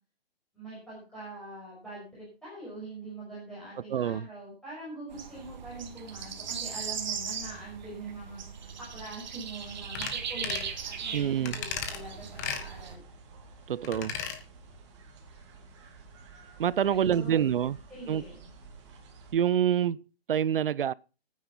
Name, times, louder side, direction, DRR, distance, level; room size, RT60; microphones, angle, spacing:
voice 1, 0.5-13.2 16.8-17.5 17.9-18.5, right 2 dB, ahead, 5.7 m, -43 dB
voice 2, 3.9-4.3 11.1-11.6 13.7-14.1 16.6-17.8 18.1-18.2 19.3-20.9, right 9 dB, 65° right, 0.5 m, -27 dB
sound 1, 5.1-12.9, right 7 dB, 45° right, 2.1 m, -38 dB
sound 2, 9.5-19.3, right 4 dB, 30° right, 2.6 m, -52 dB
sound 3, 9.9-10.2 10.4-10.7 11.5-12.0 12.4-12.6 13.8-14.4 14.7-14.8, left 7 dB, 20° left, 1.1 m, -35 dB
14.5 x 9.4 x 5.5 m
hypercardioid pair, 170°, 30 cm